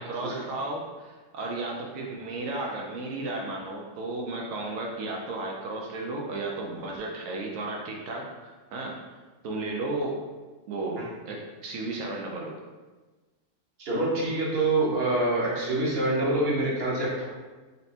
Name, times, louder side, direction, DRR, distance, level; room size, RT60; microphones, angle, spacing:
voice 1, 0.0-8.9 9.4-10.2 10.7-11.4 11.6-12.6, right 2 dB, 85° right, -1 dB, 1.0 m, -34 dB
voice 2, 13.8-17.2, right 2 dB, 50° right, -5 dB, 1.2 m, -25 dB
4.2 x 3.2 x 2.7 m, 1.3 s
omnidirectional pair, 1.3 m